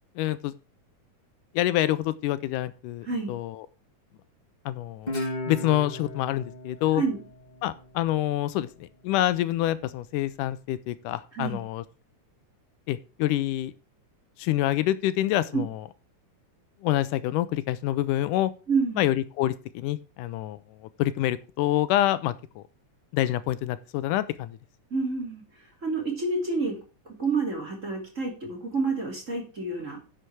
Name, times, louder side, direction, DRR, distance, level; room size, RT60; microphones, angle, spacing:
voice 1, 0.2-0.5 1.5-3.7 4.7-5.1 5.5-7.0 7.6-11.8 12.9-13.7 14.4-15.8 16.8-18.5 19.0-22.6 23.1-24.6, left 14 dB, 85° left, 15 dB, 2.1 m, -27 dB
Guitar, 5.1-8.3, left 1 dB, 20° left, 1.1 m, -36 dB
voice 2, 18.7-19.0 24.9-25.4 25.8-26.8 27.0-30.0, right 4 dB, 25° right, 0 dB, 2.9 m, -28 dB
10.0 x 6.5 x 4.7 m, 0.33 s
omnidirectional pair, 3.7 m